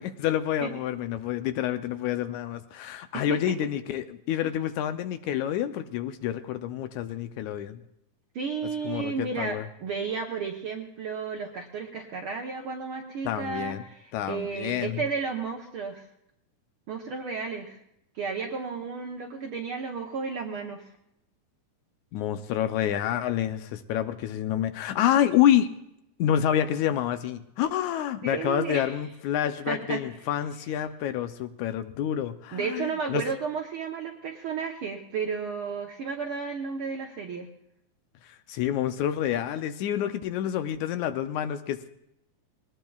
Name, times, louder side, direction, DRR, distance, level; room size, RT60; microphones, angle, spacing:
voice 1, 0.0-7.8 8.8-9.7 13.2-13.8 14.1-15.0 22.1-25.7 26.2-33.2 38.2-41.9, left 10 dB, 75° left, 10 dB, 1.9 m, -28 dB
voice 2, 3.1-3.5 4.4-4.5 8.3-16.1 16.9-17.8 18.1-20.8 28.2-28.9 29.7-30.0 32.5-37.5, right 5 dB, 65° right, 2 dB, 1.4 m, -33 dB
20.5 x 19.0 x 2.4 m, 0.80 s
omnidirectional pair, 3.6 m